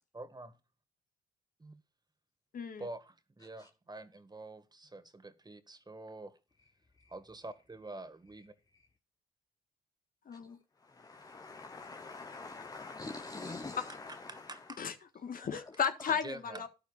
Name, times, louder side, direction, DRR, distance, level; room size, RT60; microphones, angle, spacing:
voice 1, 0.1-0.6 1.6-1.7 2.8-6.4 7.1-8.5 14.1-14.8 16.1-16.6, right 2 dB, 20° right, 1.9 m, -47 dB
voice 2, 2.5-2.9 10.2-10.6 14.8-14.9 15.2-16.7, left 7 dB, 50° left, 1.5 m, -35 dB
voice 3, 10.8-14.4, left 3 dB, 20° left, 0.9 m, -45 dB
12.5 x 11.5 x 2.5 m
hypercardioid pair, 45°, 19 cm